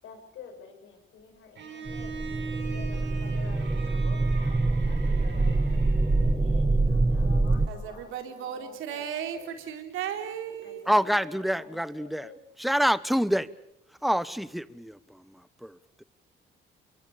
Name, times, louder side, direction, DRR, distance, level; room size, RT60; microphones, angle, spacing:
voice 1, 0.0-4.6 4.8-5.6 6.2-8.1 8.4-9.5 10.6-12.3, left 6 dB, 80° left, 6.8 m, -49 dB
Bowed string instrument, 1.6-6.4, right 4 dB, 65° right, 7.8 m, -42 dB
sound 1, 1.9-7.7, right 2 dB, 20° right, 1.6 m, -25 dB
voice 2, 7.7-10.9, right 8 dB, 90° right, 3.8 m, -35 dB
voice 3, 10.9-12.3 12.6-13.5 14.0-16.0, equal, ahead, 1.0 m, -27 dB
29.0 x 23.0 x 7.1 m
cardioid pair, 90°, 20 cm